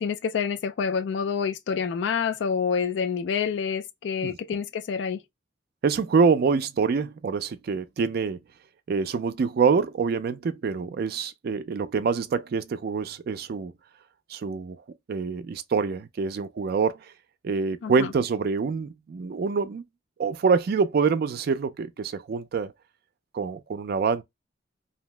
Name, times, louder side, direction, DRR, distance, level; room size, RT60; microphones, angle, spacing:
voice 1, 0.0-5.2 17.8-18.1, left 6 dB, 70° left, 0.3 m, -27 dB
voice 2, 5.8-8.4 8.9-13.7 14.3-14.8 15.1-17.0 17.4-19.8 20.2-22.7 23.3-24.2, right 5 dB, 55° right, 0.3 m, -25 dB
2.7 x 2.0 x 3.1 m
head